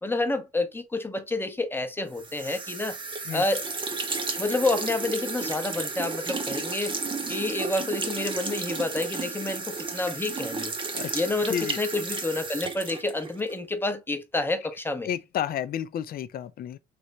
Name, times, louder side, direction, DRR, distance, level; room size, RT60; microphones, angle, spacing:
voice 1, 0.0-3.0 3.3-3.7 4.4-7.0 7.3-10.7 11.1-15.1, left 2 dB, 10° left, 0.8 m, -29 dB
sound 1, 2.2-13.6, right 4 dB, 25° right, 0.9 m, -33 dB
voice 2, 15.0-16.8, left 9 dB, 55° left, 0.5 m, -31 dB
3.4 x 3.1 x 3.9 m
cardioid pair, 110°, 18 cm